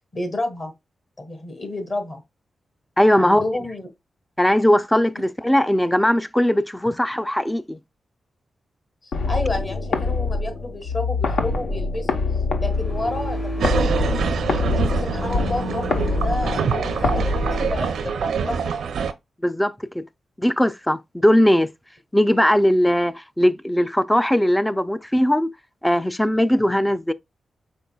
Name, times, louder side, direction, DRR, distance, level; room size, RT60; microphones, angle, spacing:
voice 1, 0.1-0.7 1.2-2.2 3.1-3.9 6.9-7.0 9.0-12.2 12.6-13.9 14.7-18.7, left 2 dB, 35° left, 1.4 m, -30 dB
voice 2, 3.0-3.4 4.4-7.8 19.4-20.0 20.4-21.7 22.1-25.5 25.8-27.1, equal, 5° left, 0.3 m, -19 dB
sound 1, 9.1-18.2, left 3 dB, 75° left, 0.9 m, -25 dB
sound 2, 12.5-17.8, left 1 dB, 60° left, 2.4 m, -31 dB
sound 3, 13.6-19.1, right 6 dB, 85° right, 0.5 m, -25 dB
5.2 x 4.5 x 2.3 m
wide cardioid pair, 115°, 0 cm